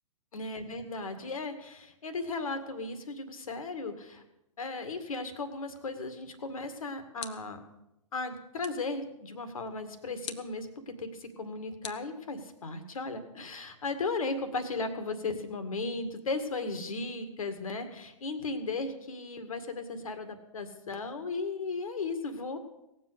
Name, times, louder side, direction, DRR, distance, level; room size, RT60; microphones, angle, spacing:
voice 1, 0.3-4.2 4.6-7.6 8.1-22.6, left 3 dB, 75° left, 9 dB, 2.1 m, -36 dB
sound 1, 7.2-7.7 8.6-9.0 10.2-10.6 11.8-12.7, left 8 dB, 60° left, 1.2 m, -45 dB
17.5 x 7.6 x 8.1 m, 0.88 s
hypercardioid pair, 130°, 18 cm